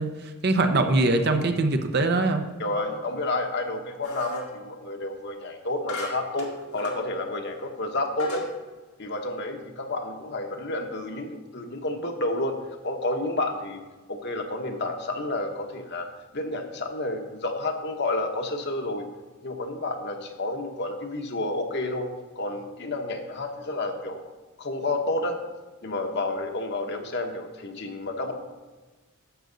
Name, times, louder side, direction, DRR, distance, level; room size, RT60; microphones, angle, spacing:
voice 1, 0.0-2.5, right 2 dB, 50° right, 6 dB, 0.8 m, -23 dB
voice 2, 2.6-6.5 6.7-8.4 9.0-12.6 12.8-13.8 14.1-16.1 16.3-19.1 19.4-22.1 22.4-24.3 24.6-25.4 25.8-28.3, left 2 dB, 50° left, 4 dB, 1.1 m, -30 dB
sound 1, 4.0-4.5 5.9-7.0 7.6-7.7 8.2-8.5, left 3 dB, 85° left, 2.1 m, -38 dB
11.5 x 7.7 x 4.0 m, 1.3 s
head